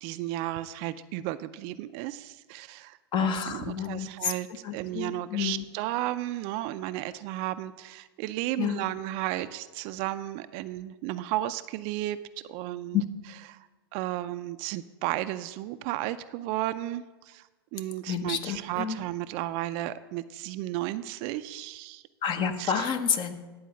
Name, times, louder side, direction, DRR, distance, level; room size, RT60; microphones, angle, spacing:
voice 1, 0.0-12.2 12.5-13.7 13.9-17.4 17.7-22.0 22.6-22.9, right 15 dB, 45° right, 12 dB, 0.4 m, -34 dB
voice 2, 3.1-4.1 4.6-5.6 8.6-8.8 12.9-13.0 18.1-19.0 22.2-23.3, left 7 dB, 35° left, 9 dB, 1.0 m, -29 dB
10.0 x 4.7 x 7.6 m, 1.2 s
hypercardioid pair, 105°, 14 cm